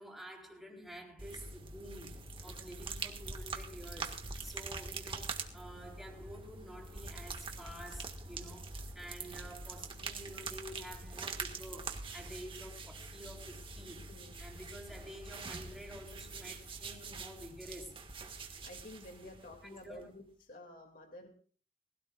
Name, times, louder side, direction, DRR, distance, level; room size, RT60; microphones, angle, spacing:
voice 1, 0.0-14.1 14.4-18.0 19.2-19.3 19.8-20.1, equal, ahead, 3.8 m, -50 dB
sound 1, 1.2-20.1, right 4 dB, 30° right, 1.7 m, -44 dB
voice 2, 14.0-14.5 18.3-21.3, left 1 dB, 50° left, 2.4 m, -52 dB
22.0 x 17.0 x 2.4 m
head